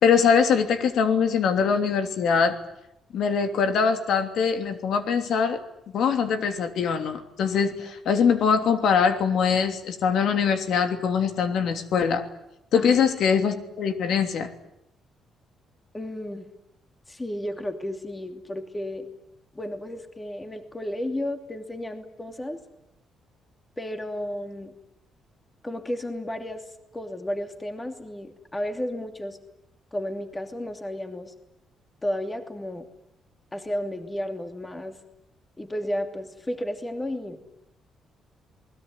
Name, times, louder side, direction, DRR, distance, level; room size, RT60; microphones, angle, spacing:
voice 1, 0.0-2.6 3.1-5.6 5.9-12.2 12.7-14.5, left 6 dB, 65° left, 7 dB, 3.1 m, -22 dB
voice 2, 15.9-16.5 17.1-19.1 19.5-22.6 23.8-24.7 25.6-26.6 26.9-29.4 29.9-31.3 32.0-32.9 33.5-35.0 35.6-37.4, left 1 dB, 15° left, 6 dB, 2.8 m, -32 dB
28.5 x 20.5 x 9.9 m, 0.81 s
cardioid pair, 135°, 0 cm